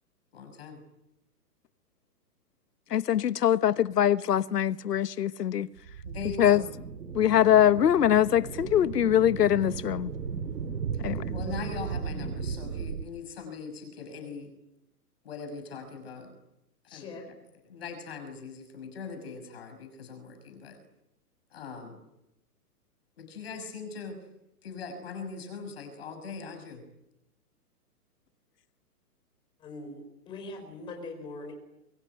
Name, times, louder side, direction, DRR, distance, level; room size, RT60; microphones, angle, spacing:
voice 1, 0.3-0.8 6.0-6.7 10.9-14.5 15.2-16.3 16.9-17.3 17.7-20.8 21.5-22.0 23.2-24.2 24.6-26.8, left 5 dB, 40° left, 6.2 m, -41 dB
voice 2, 2.9-5.7 6.4-6.6 7.1-10.1 11.0-11.3, left 10 dB, 80° left, 1.2 m, -23 dB
sound 1, 5.8-13.0, right 6 dB, 85° right, 3.1 m, -36 dB
voice 3, 16.9-17.3 29.6-31.5, left 2 dB, 10° left, 4.5 m, -42 dB
27.5 x 23.5 x 9.2 m
hypercardioid pair, 180°, 47 cm